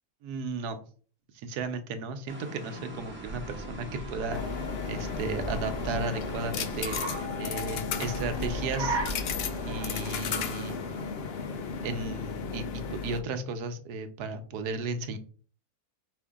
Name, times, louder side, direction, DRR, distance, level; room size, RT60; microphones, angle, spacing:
voice 1, 0.2-0.8 1.4-4.4 4.9-7.0 7.4-9.0 9.7-10.8 11.8-15.2, right 3 dB, 90° right, 8 dB, 1.2 m, -34 dB
sound 1, 2.3-7.3, right 1 dB, 10° right, 1.1 m, -43 dB
Car, 2.9-12.4, right 3 dB, 30° right, 0.5 m, -39 dB
sound 2, 4.3-13.2, left 6 dB, 80° left, 0.5 m, -34 dB
5.1 x 2.6 x 3.5 m, 0.42 s
omnidirectional pair, 1.6 m